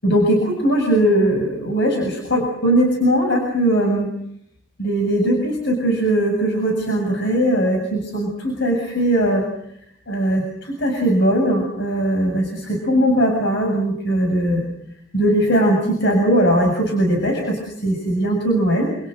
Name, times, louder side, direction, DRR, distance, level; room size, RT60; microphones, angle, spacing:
voice 1, 0.0-4.1 4.8-9.5 10.1-14.6 15.1-18.9, right 1 dB, 60° left, 2 dB, 7.6 m, -19 dB
29.5 x 28.5 x 6.5 m, 0.72 s
head